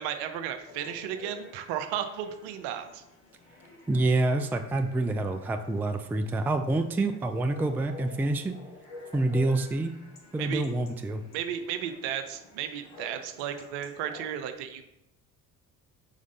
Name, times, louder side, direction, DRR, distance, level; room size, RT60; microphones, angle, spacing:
voice 1, 0.0-3.0 10.4-10.6 11.3-14.8, right 9 dB, 60° right, 8 dB, 0.8 m, -34 dB
Chatter / Bark / Livestock farm animals working animals, 0.6-14.2, left 3 dB, 65° left, 1.7 m, -50 dB
voice 2, 3.9-8.5 9.1-9.9 10.3-11.2, right 2 dB, 5° right, 7 dB, 0.4 m, -27 dB
5.0 x 4.0 x 5.4 m, 0.88 s
figure-of-eight pair, 50°, 46 cm